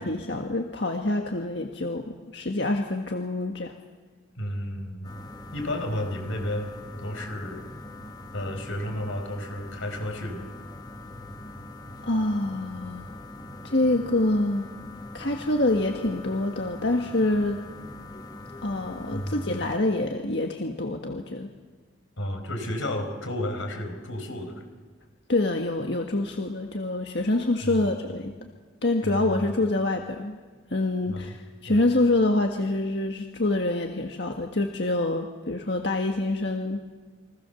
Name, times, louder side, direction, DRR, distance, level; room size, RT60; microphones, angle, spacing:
voice 1, 0.0-3.7 12.0-13.2 13.6-14.7 15.1-17.6 18.6-21.5 25.3-28.5 28.8-30.4 30.7-36.8, left 2 dB, 60° left, 3 dB, 1.7 m, -26 dB
voice 2, 4.4-5.2 5.5-7.7 8.3-10.5 19.1-19.5 22.2-24.6 27.6-27.9 29.0-29.4 31.1-31.4 31.7-31.8, left 1 dB, 90° left, 5 dB, 5.1 m, -32 dB
sound 1, 5.0-19.8, left 2 dB, 20° left, 1.5 m, -42 dB
29.5 x 23.5 x 7.1 m, 1.4 s
head